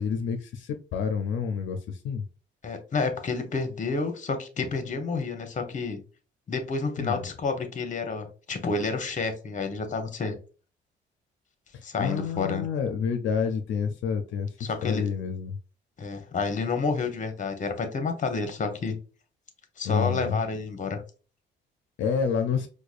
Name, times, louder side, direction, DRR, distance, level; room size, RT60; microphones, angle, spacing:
voice 1, 0.0-2.2 7.0-7.2 11.7-15.6 19.8-20.4 22.0-22.7, left 6 dB, 75° left, 0.5 m, -29 dB
voice 2, 2.6-6.0 6.5-10.4 11.8-12.6 14.6-15.0 16.0-19.0 19.8-21.0, left 4 dB, 40° left, 0.9 m, -29 dB
4.7 x 2.2 x 2.4 m
cardioid pair, 90°, 20 cm